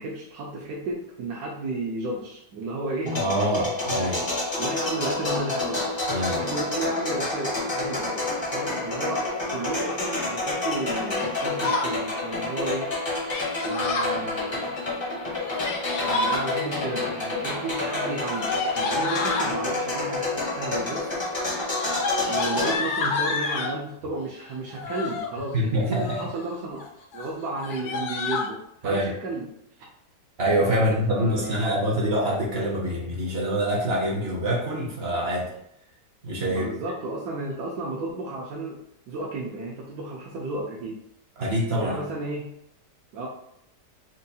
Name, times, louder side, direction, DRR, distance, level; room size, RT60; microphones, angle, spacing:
voice 1, 0.0-3.2 4.5-5.8 6.3-12.9 13.6-14.8 16.0-21.2 22.3-26.8 27.1-29.5 30.7-31.8 36.5-38.8 39.1-41.0 41.8-42.5 43.1-43.3, right 2 dB, 75° right, -4 dB, 1.2 m, -33 dB
voice 2, 3.0-4.3 6.1-6.4 25.5-26.2 28.8-29.1 30.4-35.5 36.2-36.7 41.4-42.0, equal, 50° right, -4 dB, 0.8 m, -25 dB
sound 1, 3.1-22.8, left 2 dB, 30° left, 0.5 m, -29 dB
Yell, 11.1-11.9 13.3-14.2 15.3-16.4 17.7-19.5 20.4-20.8 21.1-23.8 24.7-25.3 25.8-26.4 26.7-26.9 27.1-27.3 27.6-28.5, left 3 dB, 70° left, 1.2 m, -29 dB
4.4 x 2.3 x 2.7 m, 0.76 s
omnidirectional pair, 1.9 m